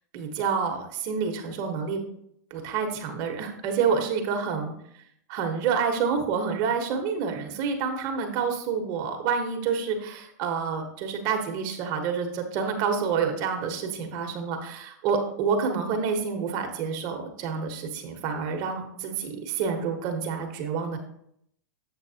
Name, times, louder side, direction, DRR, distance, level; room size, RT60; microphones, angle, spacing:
voice 1, 0.1-2.0 2.5-4.7 5.3-21.0, right 6 dB, 45° right, 4 dB, 1.2 m, -28 dB
7.8 x 6.6 x 2.8 m, 0.71 s
hypercardioid pair, 120°, 10 cm